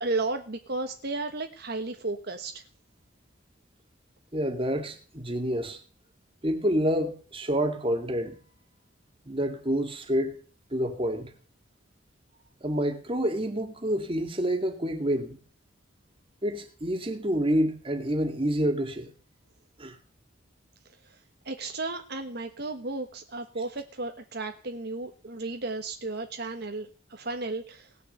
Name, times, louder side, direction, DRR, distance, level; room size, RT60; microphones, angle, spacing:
voice 1, 0.0-2.6 21.4-27.9, right 3 dB, 55° right, 1.3 m, -34 dB
voice 2, 4.3-5.8 6.4-8.4 9.3-10.4 10.7-11.3 12.6-15.4 16.4-19.1 19.8-19.9, equal, 30° right, 2.2 m, -28 dB
18.5 x 6.7 x 7.9 m
head